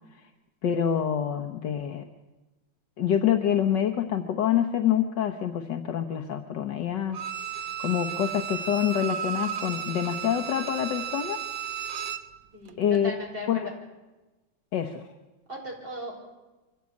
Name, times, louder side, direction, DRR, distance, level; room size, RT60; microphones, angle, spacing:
voice 1, 0.6-2.0 3.0-7.2 7.8-11.4 12.8-13.1 13.5-13.7 14.7-15.0, left 9 dB, 70° left, 5 dB, 1.7 m, -26 dB
Bowed string instrument, 7.1-12.3 12.7-12.8, right 8 dB, 85° right, 1.7 m, -34 dB
voice 2, 12.5-13.7 15.5-16.1, equal, 30° right, -1 dB, 6.0 m, -37 dB
24.5 x 16.0 x 8.4 m, 1.1 s
omnidirectional pair, 2.0 m